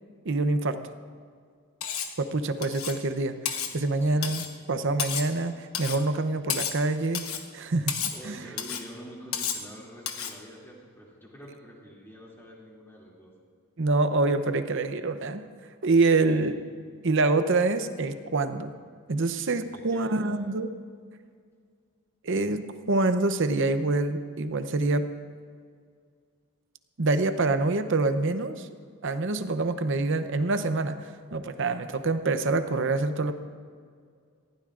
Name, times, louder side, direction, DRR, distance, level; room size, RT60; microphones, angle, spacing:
voice 1, 0.2-0.8 2.2-3.3 3.7-7.3 7.5-7.9 8.2-8.4 13.8-15.5 15.8-16.6 17.0-18.7 19.1-20.7 22.2-25.1 27.0-28.7 29.0-33.3, right 3 dB, 55° right, 10 dB, 0.7 m, -26 dB
Cutlery silverware, 1.8-2.2 2.6-3.0 3.4-3.7 4.2-4.5 5.0-5.3 5.7-6.0 6.5-6.8 7.1-7.5 7.9-8.2 8.6-8.9 9.3-9.7 10.1-10.4, left 8 dB, 75° left, 1.1 m, -32 dB
voice 2, 4.0-4.4 8.1-13.3 16.2-16.4 19.6-20.5, equal, 10° left, -4 dB, 2.6 m, -46 dB
19.5 x 15.5 x 2.5 m, 2.1 s
head